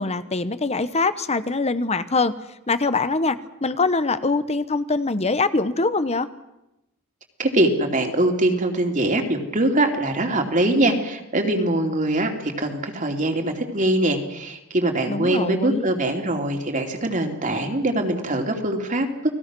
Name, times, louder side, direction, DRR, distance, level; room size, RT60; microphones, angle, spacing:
voice 1, 0.0-2.3 2.7-6.3 15.1-15.9, left 3 dB, 30° left, 13 dB, 1.0 m, -23 dB
voice 2, 7.4-19.1, right 1 dB, 35° right, 3 dB, 2.9 m, -22 dB
30.0 x 20.0 x 6.2 m, 0.91 s
head